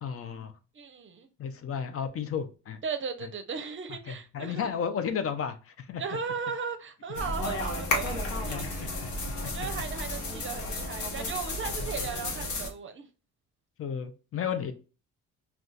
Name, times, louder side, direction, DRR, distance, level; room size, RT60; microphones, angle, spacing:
voice 1, 0.0-0.5 1.4-2.8 4.1-6.0 8.5-9.1 9.4-9.7 12.0-12.1 13.8-14.7, left 7 dB, 50° left, 0.5 m, -33 dB
voice 2, 0.7-1.3 2.8-4.7 6.0-8.9 9.3-13.1, right 6 dB, 40° right, 0.6 m, -37 dB
sound 1, 7.2-12.7, left 2 dB, 75° left, 1.0 m, -33 dB
2.4 x 2.3 x 3.8 m
cardioid pair, 90°, 30 cm